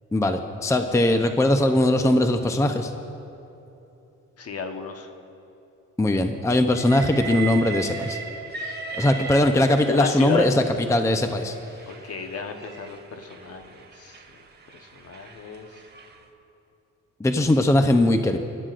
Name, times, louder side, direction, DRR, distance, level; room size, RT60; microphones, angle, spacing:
voice 1, 0.1-2.9 6.0-8.2 8.9-11.5 17.2-18.4, left 1 dB, 10° left, 6 dB, 0.6 m, -20 dB
voice 2, 4.4-5.1 8.5-8.8 9.8-10.5 11.9-14.2 14.7-15.7, left 5 dB, 50° left, 5 dB, 1.2 m, -33 dB
Train, 6.7-10.1 11.0-16.2, right 5 dB, 35° right, 1.2 m, -37 dB
23.5 x 11.5 x 2.5 m, 2.9 s
cardioid pair, 90°, 30 cm